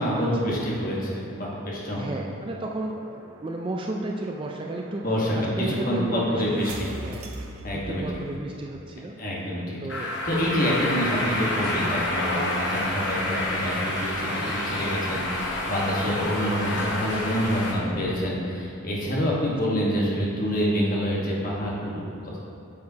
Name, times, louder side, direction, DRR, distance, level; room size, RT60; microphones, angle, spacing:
voice 1, 0.0-2.1 5.0-6.9 7.6-8.0 9.2-9.8 10.2-22.4, equal, 40° left, -5 dB, 1.3 m, -27 dB
sound 1, 1.8-8.6, right 1 dB, 80° right, 0.7 m, -42 dB
voice 2, 2.0-5.0 5.3-7.3 7.7-9.1 9.8-10.1, right 2 dB, 25° right, 1 dB, 0.3 m, -33 dB
sound 2, 9.9-17.7, left 1 dB, 55° left, 1.1 m, -28 dB
8.5 x 6.5 x 2.8 m, 2.9 s
head